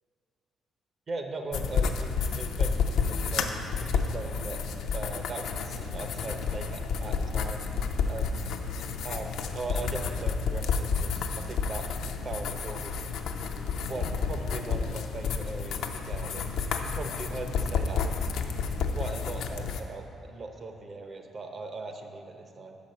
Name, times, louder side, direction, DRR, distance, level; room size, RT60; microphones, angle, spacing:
voice 1, 1.1-4.6 4.9-7.6 8.1-8.5 9.0-11.9 12.2-13.0 13.8-16.5 16.8-18.0 18.9-22.8, right 3 dB, 45° right, 5 dB, 0.7 m, -39 dB
sound 1, 1.5-19.8, left 5 dB, 80° left, 0.4 m, -30 dB
5.7 x 5.2 x 6.5 m, 2.7 s
cardioid pair, 90°, 0 cm